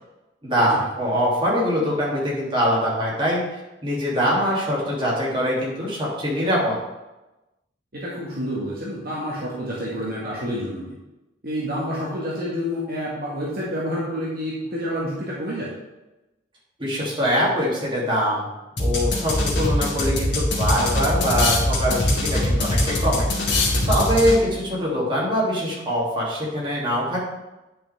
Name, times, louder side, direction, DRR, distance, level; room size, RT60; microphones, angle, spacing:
voice 1, 0.4-3.4 3.8-6.8 16.8-18.5 18.8-22.0 22.3-23.3 23.9-27.2, equal, 30° right, -6 dB, 3.0 m, -23 dB
voice 2, 7.9-10.9 11.4-15.7, equal, 55° right, -6 dB, 1.8 m, -28 dB
sound 1, 18.8-24.6, left 1 dB, 70° left, 2.2 m, -22 dB
10.5 x 5.8 x 3.6 m, 1.0 s
head